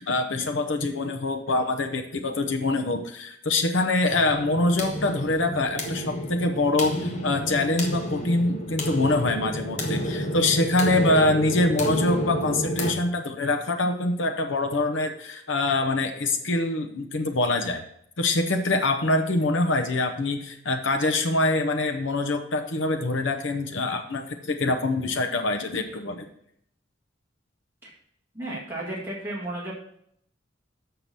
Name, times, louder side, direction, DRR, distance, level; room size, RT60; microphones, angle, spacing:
voice 1, 0.0-17.8 18.2-26.3, left 2 dB, 85° left, 5 dB, 0.9 m, -25 dB
sound 1, 4.1-12.9, equal, 40° left, 1.3 m, -30 dB
voice 2, 28.3-29.7, right 1 dB, 10° right, -6 dB, 1.7 m, -33 dB
6.8 x 5.8 x 6.0 m, 0.69 s
head